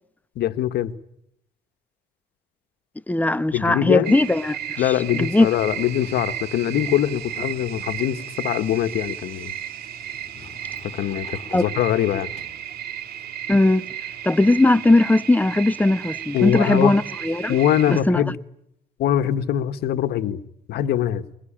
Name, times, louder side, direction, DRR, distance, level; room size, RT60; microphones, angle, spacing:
voice 1, 0.3-0.9 3.5-4.1 4.8-9.5 11.0-12.3 16.3-16.9 17.5-18.4 19.0-20.4 20.7-21.2, left 11 dB, 70° left, 1.6 m, -23 dB
voice 2, 3.1-5.5 11.5-11.6 13.5-13.9 14.2-17.6 17.9-18.2, left 2 dB, 10° left, 1.0 m, -19 dB
sound 1, 4.0-18.0, right 10 dB, 65° right, 2.4 m, -34 dB
Sliding door, 5.6-13.1, left 6 dB, 35° left, 4.5 m, -49 dB
22.5 x 22.5 x 8.9 m
cardioid pair, 110°, 17 cm